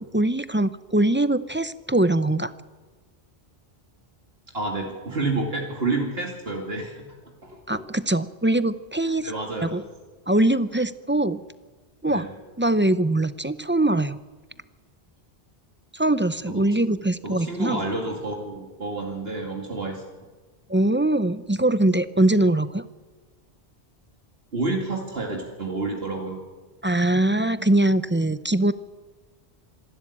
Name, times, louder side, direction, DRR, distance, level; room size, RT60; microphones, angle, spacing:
voice 1, 0.1-2.5 7.7-9.3 9.6-9.8 10.3-11.4 12.0-12.3 12.6-14.2 15.9-17.8 20.7-22.8 26.8-28.7, right 1 dB, 15° right, 13 dB, 0.5 m, -22 dB
voice 2, 4.5-7.0 7.4-7.8 9.2-9.8 12.1-12.3 16.5-16.9 17.2-20.0 24.5-26.4, right 3 dB, 70° right, 0 dB, 2.7 m, -29 dB
26.0 x 12.5 x 8.6 m, 1.3 s
omnidirectional pair, 1.0 m